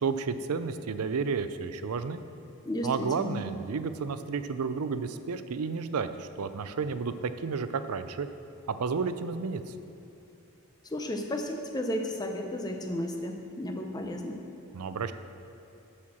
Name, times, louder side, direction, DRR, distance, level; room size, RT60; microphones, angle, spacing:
voice 1, 0.0-2.2 2.8-8.3 8.7-9.6 14.7-15.1, right 5 dB, 85° right, 11 dB, 0.5 m, -31 dB
voice 2, 2.7-3.4 10.8-14.4, left 1 dB, 15° left, 4 dB, 0.6 m, -33 dB
11.0 x 4.4 x 7.2 m, 2.7 s
head